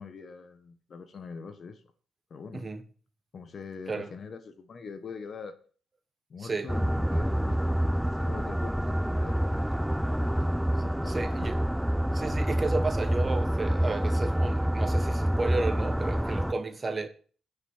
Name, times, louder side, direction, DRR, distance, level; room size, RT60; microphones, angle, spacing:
voice 1, 0.0-1.8 2.3-2.7 3.3-5.6 6.3-10.3 10.8-11.5, left 5 dB, 50° left, 1.5 m, -43 dB
sound 1, 6.7-16.5, equal, 5° right, 0.4 m, -27 dB
voice 2, 11.0-11.5 12.1-17.1, right 3 dB, 30° right, 1.5 m, -32 dB
9.7 x 6.2 x 7.3 m
cardioid pair, 90°, 0 cm